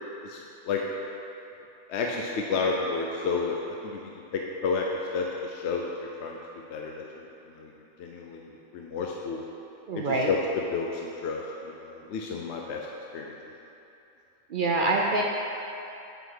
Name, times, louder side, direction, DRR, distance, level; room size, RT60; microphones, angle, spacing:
voice 1, 0.2-0.8 1.9-4.0 4.3-4.9 5.1-5.9 6.2-6.4 6.7-7.0 7.5-7.7 8.0-9.4 9.9-12.9 13.1-13.4, left 4 dB, 65° left, 0 dB, 0.8 m, -31 dB
voice 2, 9.9-10.3 14.5-15.2, right 2 dB, 60° right, -1 dB, 0.5 m, -25 dB
7.8 x 5.2 x 4.7 m, 2.9 s
omnidirectional pair, 1.5 m